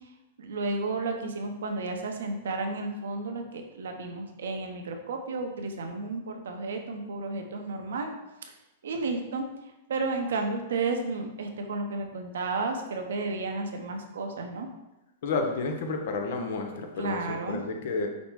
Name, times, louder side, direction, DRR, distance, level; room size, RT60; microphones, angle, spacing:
voice 1, 0.4-8.1 8.8-9.5 9.9-14.7 17.0-17.8, right 3 dB, 80° right, 4 dB, 0.7 m, -32 dB
voice 2, 15.2-18.1, left 3 dB, 65° left, 4 dB, 0.8 m, -31 dB
5.2 x 2.1 x 4.6 m, 0.99 s
hypercardioid pair, 130°, 0 cm